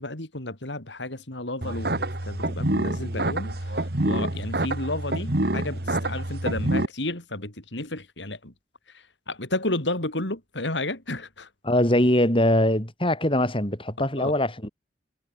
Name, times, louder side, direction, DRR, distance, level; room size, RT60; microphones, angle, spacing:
voice 1, 0.0-8.5 8.9-11.5 14.2-14.4, left 2 dB, 90° left, 4.9 m, -32 dB
sound 1, 1.6-6.9, right 1 dB, 60° right, 2.5 m, -27 dB
voice 2, 11.6-14.7, left 1 dB, 30° left, 7.9 m, -22 dB
head